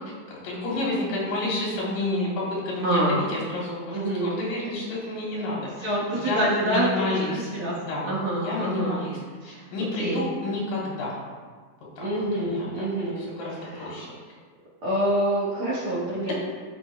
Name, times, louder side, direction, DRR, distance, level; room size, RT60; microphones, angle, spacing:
voice 1, 0.3-7.4 7.7-8.1 8.4-9.2 9.4-11.1 12.0-12.1 12.4-12.7 13.2-14.1 16.2-16.3, left 2 dB, 80° left, -5 dB, 3.6 m, -30 dB
voice 2, 2.8-3.2 3.9-4.3 5.8-7.2 7.5-7.7 8.1-9.0 9.4-9.7 10.0-10.3 12.0-13.3 13.6-14.1 14.8-16.3, right 1 dB, 45° right, -8 dB, 2.2 m, -26 dB
14.0 x 5.4 x 2.4 m, 1.5 s
omnidirectional pair, 3.9 m